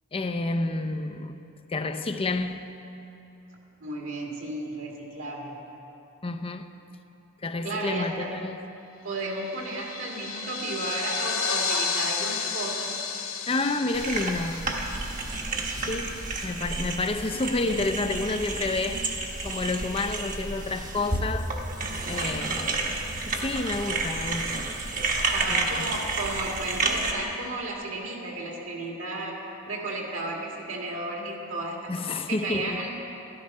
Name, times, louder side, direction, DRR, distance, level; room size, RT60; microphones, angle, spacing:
voice 1, 0.1-1.4 1.7-2.7 6.2-6.7 7.4-8.6 13.5-14.7 15.9-21.5 22.1-23.0 23.3-24.7 25.5-25.9 31.9-32.8, left 2 dB, 25° left, 0.5 m, -30 dB
voice 2, 3.8-5.6 7.6-8.3 9.0-12.9 25.3-29.3 29.7-32.9, right 2 dB, 70° right, 2.2 m, -33 dB
sound 1, 9.2-16.1, left 5 dB, 80° left, 1.0 m, -32 dB
sound 2, 13.9-27.1, right 3 dB, 40° right, 1.2 m, -30 dB
13.0 x 12.0 x 5.4 m
head